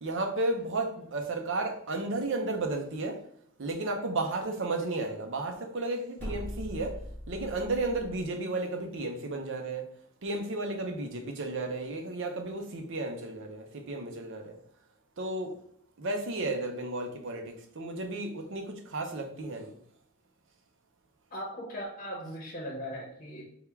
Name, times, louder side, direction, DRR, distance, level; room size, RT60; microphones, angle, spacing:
voice 1, 0.0-3.2 3.6-7.0 7.3-9.8 10.2-14.6 15.2-15.5 16.0-19.8, right 2 dB, 55° right, 0.7 m, -33 dB
sound 1, 6.2-8.3, equal, 10° left, 1.0 m, -40 dB
voice 2, 21.3-23.4, equal, 40° left, 0.9 m, -38 dB
3.6 x 2.3 x 4.4 m
head